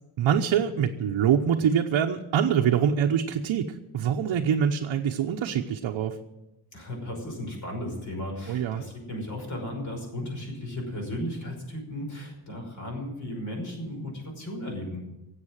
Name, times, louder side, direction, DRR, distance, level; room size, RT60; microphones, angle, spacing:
voice 1, 0.2-6.2 8.5-8.8, right 8 dB, 65° right, 2 dB, 1.0 m, -24 dB
voice 2, 6.7-15.1, left 1 dB, 40° left, 1 dB, 5.6 m, -35 dB
16.5 x 8.2 x 8.9 m, 0.94 s
wide cardioid pair, 160°, 47 cm